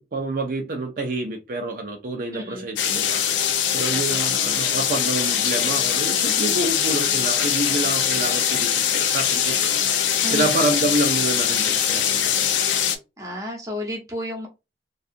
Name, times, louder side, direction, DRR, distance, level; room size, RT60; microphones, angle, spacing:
voice 1, 0.0-3.2 3.7-9.9 10.3-12.5, right 2 dB, 50° right, 0.4 m, -27 dB
voice 2, 2.3-2.7 3.9-4.4 10.2-10.7 13.2-14.5, left 1 dB, 20° right, 0.7 m, -32 dB
sound 1, 2.8-13.0, left 8 dB, 85° left, 0.4 m, -22 dB
2.7 x 2.3 x 2.4 m
head